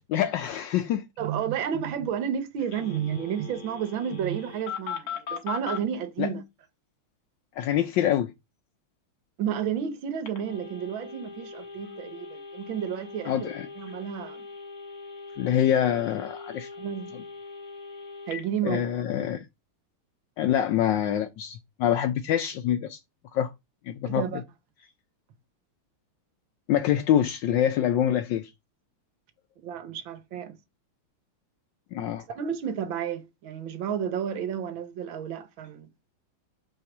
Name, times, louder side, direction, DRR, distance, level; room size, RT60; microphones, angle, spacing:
voice 1, 0.1-1.1 6.2-6.3 7.6-8.3 13.2-13.7 15.4-16.7 18.6-19.5 20.4-23.0 23.3-23.5 23.9-24.2 26.7-28.5 31.9-32.2, left 10 dB, 75° left, 1.1 m, -25 dB
voice 2, 1.2-6.4 9.4-13.5 13.8-14.4 16.8-17.1 18.3-19.0 24.1-24.4 29.6-30.6 32.3-35.9, right 8 dB, 70° right, 1.6 m, -31 dB
Telephone, 2.7-5.8 10.2-18.4, left 6 dB, 50° left, 1.7 m, -40 dB
5.6 x 3.6 x 5.9 m
omnidirectional pair, 2.4 m